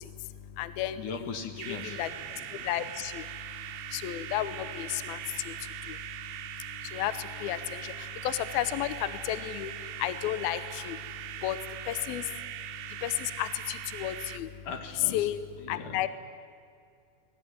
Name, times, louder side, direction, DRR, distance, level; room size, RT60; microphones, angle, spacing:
voice 1, 0.0-1.3 1.7-14.7 15.1-15.4 15.7-16.1, left 12 dB, 75° left, 13 dB, 2.2 m, -34 dB
voice 2, 1.0-2.0 14.6-15.3 15.6-16.1, left 5 dB, 55° left, 7 dB, 2.6 m, -39 dB
sound 1, 1.6-14.4, right 12 dB, 85° right, 3.6 m, -41 dB
25.5 x 20.5 x 9.9 m, 2.3 s
omnidirectional pair, 5.5 m